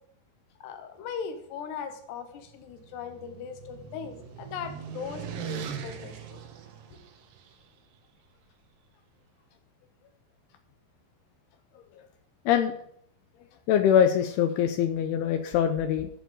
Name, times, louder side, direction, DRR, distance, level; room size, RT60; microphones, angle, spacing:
voice 1, 0.6-6.4 6.9-7.1, left 7 dB, 70° left, 6 dB, 3.4 m, -39 dB
sound 1, 2.3-7.5, right 8 dB, 75° right, 3.1 m, -40 dB
voice 2, 13.7-16.1, left 9 dB, 90° left, 8 dB, 2.3 m, -23 dB
13.5 x 4.7 x 7.6 m, 0.69 s
omnidirectional pair, 5.2 m